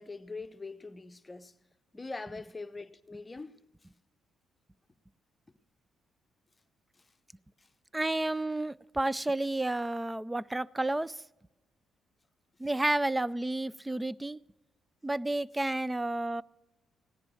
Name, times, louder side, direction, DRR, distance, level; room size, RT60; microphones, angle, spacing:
voice 1, 0.0-1.5 1.9-3.6 6.9-7.1 7.6-7.7, left 3 dB, 20° left, 0.8 m, -43 dB
voice 2, 7.9-11.2 12.6-14.4 15.0-16.4, right 2 dB, 10° right, 0.4 m, -31 dB
16.5 x 10.5 x 6.3 m
cardioid pair, 90°, 0 cm